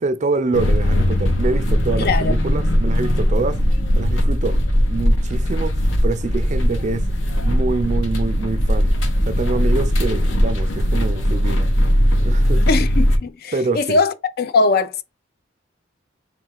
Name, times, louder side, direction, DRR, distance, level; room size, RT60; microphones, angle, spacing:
voice 1, 0.0-3.6 3.9-4.6 4.9-7.1 7.4-8.9 9.3-11.7 12.2-12.6 13.5-14.0, right 3 dB, 40° right, 0.4 m, -25 dB
sound 1, 0.5-13.2, equal, 75° left, 0.8 m, -19 dB
voice 2, 2.0-2.3 12.7-15.0, left 3 dB, 50° left, 0.4 m, -20 dB
3.6 x 2.4 x 4.6 m
head